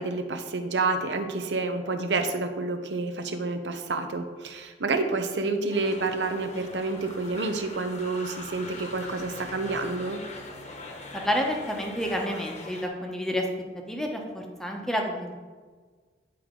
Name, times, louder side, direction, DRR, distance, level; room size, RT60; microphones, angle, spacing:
voice 1, 0.0-10.2, right 3 dB, 85° right, 6 dB, 0.8 m, -29 dB
sound 1, 5.7-12.9, left 2 dB, 40° left, 1.0 m, -42 dB
voice 2, 11.2-13.5 13.9-15.3, equal, 5° left, 1 dB, 0.9 m, -29 dB
9.9 x 4.8 x 3.8 m, 1.5 s
head